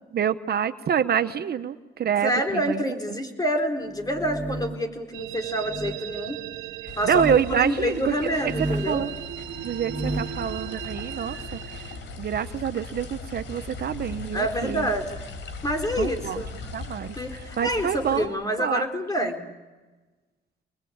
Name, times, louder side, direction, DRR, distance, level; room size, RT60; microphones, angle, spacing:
voice 1, 0.1-2.8 7.1-8.1 8.9-9.1 9.6-11.6 12.2-14.9 16.0-16.4 16.7-17.2 17.6-18.3 18.6-18.8, right 8 dB, 55° right, 10 dB, 1.0 m, -26 dB
voice 2, 2.2-6.4 7.0-9.0 14.3-15.2 15.6-16.5 17.2-19.4, equal, 20° left, 3 dB, 4.2 m, -27 dB
sound 1, 3.9-4.9 5.6-6.0 7.0-7.4 8.3-9.0 9.7-10.4, right 2 dB, 5° right, 1.4 m, -32 dB
sound 2, 5.1-12.0, right 12 dB, 90° right, 1.4 m, -38 dB
sound 3, 6.9-18.3, left 3 dB, 70° left, 3.9 m, -39 dB
27.5 x 21.0 x 8.7 m, 1.2 s
cardioid pair, 90°, 20 cm